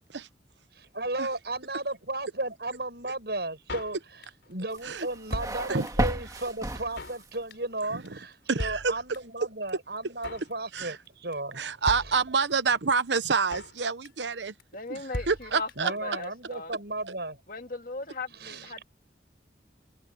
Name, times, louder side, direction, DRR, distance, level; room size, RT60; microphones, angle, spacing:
voice 1, 0.7-4.0 4.5-11.9 15.8-17.4 18.4-18.7, right 2 dB, 65° right, 7.3 m, -34 dB
Drum kit, 3.7-4.5 4.8-4.9 5.1-6.2 6.4-6.5 6.7-7.2 7.5-7.8 8.1-8.2 8.3-8.4 8.6-9.4 9.7-9.8 10.0-10.5 10.8-11.1 11.3-11.4 11.6-11.7 11.9-12.7 13.0-13.1 13.2-13.8 14.1-14.3 14.6-14.7 14.9-15.0 15.1-16.0 16.2-16.3 16.5-16.6, left 1 dB, 90° left, 4.8 m, -38 dB
sound 1, 4.7-7.4, right 1 dB, 20° right, 2.3 m, -32 dB
voice 2, 8.5-9.0 10.7-11.0 11.5-14.5 14.9-15.0 15.3-15.9, right 5 dB, 85° right, 1.0 m, -27 dB
voice 3, 14.7-16.8 17.5-18.8, left 3 dB, 50° left, 2.3 m, -38 dB
head